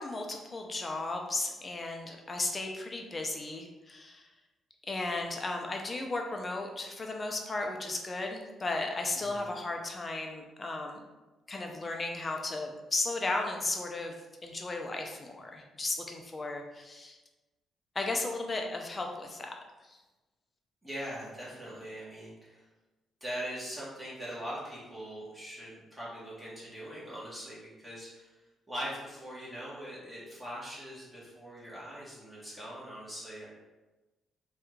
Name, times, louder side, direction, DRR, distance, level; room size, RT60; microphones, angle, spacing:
voice 1, 0.0-4.3 4.8-11.0 11.5-14.2 14.4-17.2 17.9-19.5 19.8-20.0, left 2 dB, 30° left, 2 dB, 0.5 m, -35 dB
voice 2, 9.2-9.5 20.8-22.6 23.2-28.3 28.7-33.5, equal, 15° right, -8 dB, 1.2 m, -41 dB
3.4 x 2.3 x 3.1 m, 1.1 s
cardioid pair, 90°, 0 cm